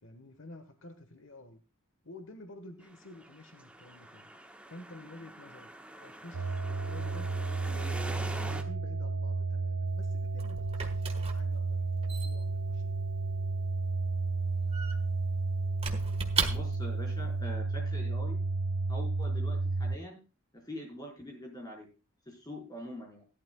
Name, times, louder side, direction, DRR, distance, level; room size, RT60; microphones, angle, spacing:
voice 1, 0.0-1.6 2.0-4.3 4.7-5.7 6.0-7.3 7.7-11.0 11.3-13.0, left 2 dB, 70° left, 8 dB, 1.3 m, -50 dB
sound 1, 2.8-8.6, right 1 dB, 5° right, 1.2 m, -45 dB
sound 2, 6.3-20.0, right 3 dB, 85° right, 0.6 m, -32 dB
Squeak / Wood, 9.9-17.0, right 5 dB, 30° right, 1.5 m, -38 dB
voice 2, 16.5-18.4 18.9-20.2 20.5-21.9 22.3-23.3, equal, 20° left, 0 dB, 4.8 m, -44 dB
17.0 x 12.0 x 2.3 m, 0.32 s
head